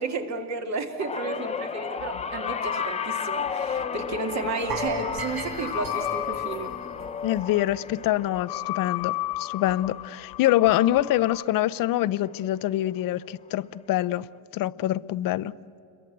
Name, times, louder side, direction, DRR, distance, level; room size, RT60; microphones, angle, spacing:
voice 1, 0.0-6.7, right 3 dB, 45° right, 2.0 m, -32 dB
sound 1, 1.0-11.4 11.8-12.2 13.3-13.4, left 5 dB, 15° left, 0.7 m, -34 dB
sound 2, 2.0-11.4, left 18 dB, 80° left, 1.0 m, -35 dB
sound 3, 4.7-7.7 8.0-8.2 8.6-8.7, right 3 dB, 80° right, 6.5 m, -37 dB
voice 2, 7.2-14.2 14.5-15.5, left 14 dB, 65° left, 0.6 m, -25 dB
28.0 x 22.5 x 7.9 m
cardioid pair, 150°, 37 cm